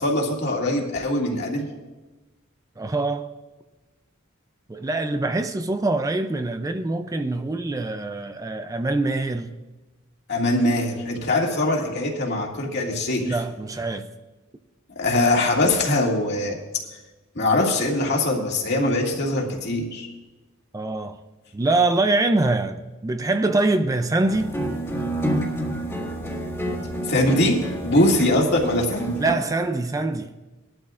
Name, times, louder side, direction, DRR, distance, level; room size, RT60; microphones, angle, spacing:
voice 1, 0.0-1.7 10.3-13.4 15.0-16.6 17.4-20.1 27.1-29.2, left 1 dB, 55° left, 2.1 m, -22 dB
voice 2, 2.8-3.3 4.7-9.6 13.2-14.1 20.7-21.2 21.5-24.6 29.2-30.3, right 2 dB, 15° right, 0.4 m, -24 dB
sound 1, 24.3-29.4, right 1 dB, 15° left, 1.8 m, -28 dB
20.0 x 12.0 x 2.5 m
head